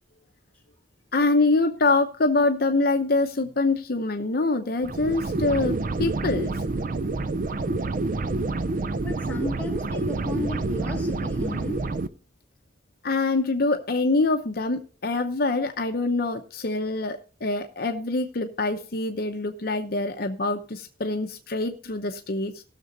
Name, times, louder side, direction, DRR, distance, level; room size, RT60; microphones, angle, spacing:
voice 1, 1.1-6.5 13.0-22.6, left 3 dB, 60° left, 5 dB, 0.8 m, -25 dB
sound 1, 4.8-12.1, right 2 dB, 50° right, 0.5 m, -28 dB
voice 2, 9.0-11.8, left 1 dB, 10° left, -1 dB, 2.8 m, -34 dB
17.0 x 6.8 x 4.0 m, 0.37 s
head